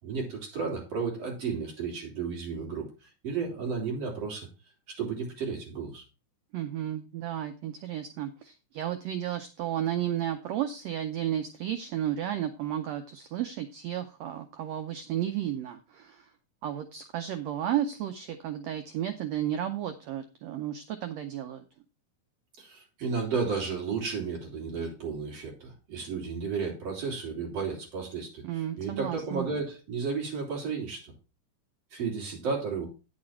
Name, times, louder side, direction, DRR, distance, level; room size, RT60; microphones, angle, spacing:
voice 1, 0.0-4.5 4.9-6.0 22.6-31.1 31.9-32.9, right 5 dB, 50° right, -1 dB, 3.8 m, -33 dB
voice 2, 6.5-16.3 16.6-21.6 28.4-29.5, right 11 dB, 75° right, 8 dB, 1.6 m, -33 dB
9.6 x 6.4 x 4.4 m, 0.30 s
omnidirectional pair, 3.7 m